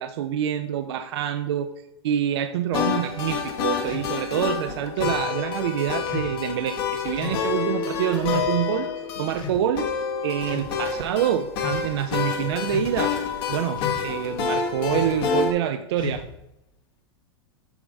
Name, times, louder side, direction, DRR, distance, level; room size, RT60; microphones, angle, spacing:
voice 1, 0.0-1.7 2.0-8.9 9.2-9.9 10.2-13.1 13.5-16.2, right 10 dB, 75° right, 9 dB, 0.5 m, -26 dB
sound 1, 2.7-15.5, left 6 dB, 65° left, 1.2 m, -28 dB
sound 2, 3.9-4.1 5.0-5.2 6.1-6.4 7.2-7.4 8.3-8.5 9.3-9.9 10.4-10.7 11.5-11.8 12.7-13.1 13.8-14.2 14.9-15.2 16.0-16.4, left 5 dB, 30° left, 1.0 m, -34 dB
7.0 x 3.5 x 5.2 m, 0.85 s
hypercardioid pair, 110°, 14 cm